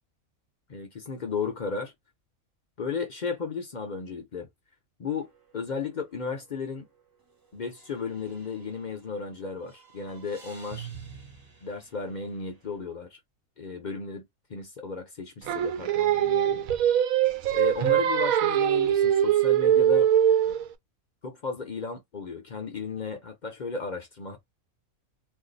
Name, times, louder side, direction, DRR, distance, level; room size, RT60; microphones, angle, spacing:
voice 1, 0.7-1.9 2.8-4.5 5.0-5.3 5.5-6.9 7.5-10.9 11.6-13.2 13.6-16.6 17.5-20.1 21.2-24.4, left 5 dB, 50° left, 0.5 m, -34 dB
sound 1, 5.1-5.5 5.8-5.9 7.8-9.2 9.6-12.6, right 7 dB, 35° right, 0.3 m, -47 dB
Singing, 15.5-20.7, right 10 dB, 80° right, 1.0 m, -22 dB
2.6 x 2.3 x 3.8 m
omnidirectional pair, 1.5 m